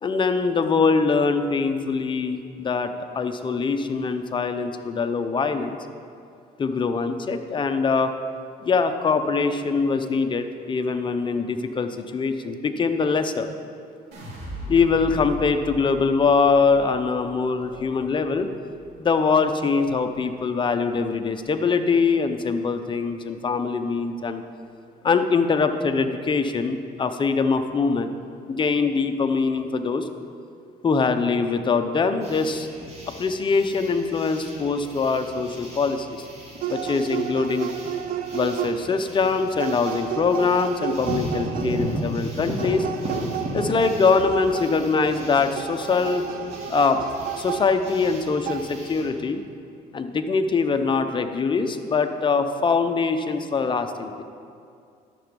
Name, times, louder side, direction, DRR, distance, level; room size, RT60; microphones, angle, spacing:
voice 1, 0.0-5.8 6.6-8.1 8.6-13.5 14.7-18.5 19.0-24.4 25.0-28.2 28.5-30.1 30.8-32.7 33.1-36.3 36.7-37.7 38.3-42.9 43.5-46.3 46.7-47.0 47.4-49.4 49.9-54.2, left 4 dB, 30° left, 7 dB, 0.7 m, -23 dB
sound 1, 14.1-20.3 20.7-21.3, left 1 dB, 75° right, 2.7 m, -40 dB
sound 2, 32.2-49.1, equal, 40° right, 2.3 m, -36 dB
sound 3, 36.6-39.0 39.6-42.0 42.6-45.0 45.5-48.1 48.5-48.6, right 10 dB, 55° right, 0.6 m, -32 dB
11.0 x 6.9 x 5.3 m, 2.4 s
cardioid pair, 110°, 17 cm